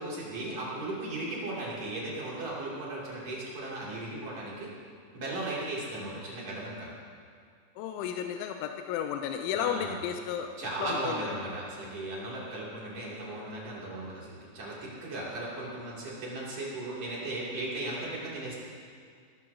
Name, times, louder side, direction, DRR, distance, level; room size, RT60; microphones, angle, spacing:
voice 1, 0.0-4.7 5.1-6.9 9.5-10.0 10.6-18.5, right 2 dB, 40° right, -7 dB, 3.2 m, -36 dB
voice 2, 7.8-10.5 10.8-11.3, left 9 dB, 85° left, 5 dB, 2.9 m, -33 dB
18.5 x 14.0 x 2.8 m, 2.2 s
omnidirectional pair, 5.5 m